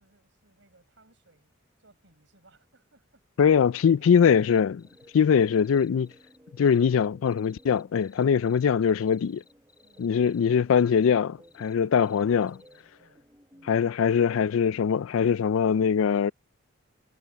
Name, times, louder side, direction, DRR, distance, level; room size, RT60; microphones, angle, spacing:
voice 1, 0.0-1.5 1.8-5.5 9.8-10.5 12.0-14.5, right 2 dB, 65° right, 7.5 m, -62 dB
voice 2, 3.4-4.8 5.1-6.1 6.6-9.4 10.0-12.5 13.7-16.3, left 7 dB, 90° left, 0.4 m, -22 dB
sound 1, 3.6-14.9, equal, 15° right, 2.9 m, -57 dB
sound 2, 4.4-5.1 5.4-12.8, left 5 dB, 20° left, 4.5 m, -61 dB
head